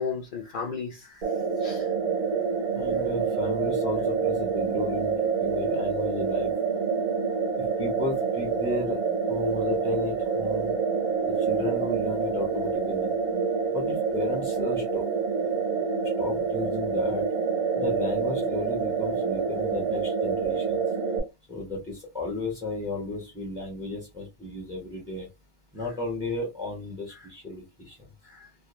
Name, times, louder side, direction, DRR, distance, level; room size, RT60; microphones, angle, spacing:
voice 1, 0.0-1.3 1.6-1.9 2.9-3.1 27.1-27.3 28.2-28.5, left 5 dB, 65° left, 0.5 m, -35 dB
sound 1, 1.2-21.2, right 5 dB, 60° right, 0.4 m, -27 dB
voice 2, 2.7-5.1 5.4-6.5 7.6-9.0 9.3-10.7 11.2-13.1 13.7-15.0 16.0-17.2 17.8-20.8 21.5-25.3 25.7-28.0, left 3 dB, 5° right, 0.5 m, -33 dB
2.3 x 2.1 x 2.9 m
omnidirectional pair, 1.4 m